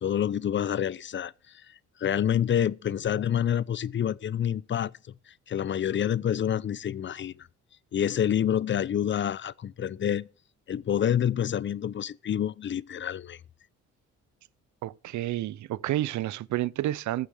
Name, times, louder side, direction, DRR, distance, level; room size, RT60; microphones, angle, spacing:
voice 1, 0.0-1.7 2.0-4.9 5.3-7.5 7.9-10.3 10.7-13.4, left 9 dB, 40° left, 0.6 m, -28 dB
voice 2, 14.8-17.3, right 14 dB, 70° right, 0.6 m, -30 dB
14.5 x 7.0 x 6.4 m
cardioid pair, 90°, 30 cm